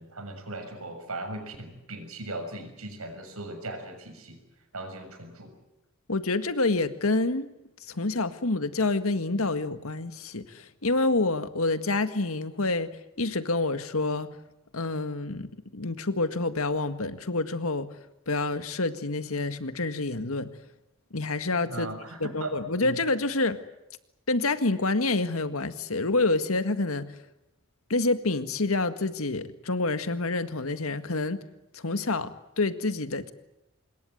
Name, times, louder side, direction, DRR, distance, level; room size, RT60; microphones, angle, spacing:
voice 1, 0.0-4.4 4.7-5.5 21.6-22.5 22.8-23.0, right 2 dB, 85° right, 6 dB, 6.6 m, -38 dB
voice 2, 6.1-7.5 7.9-12.9 13.2-14.3 14.7-17.9 18.3-20.5 21.1-21.9 22.2-23.6 24.3-27.2 27.9-31.4 31.7-33.3, left 2 dB, 80° left, 10 dB, 1.8 m, -27 dB
26.5 x 21.5 x 8.0 m, 0.92 s
head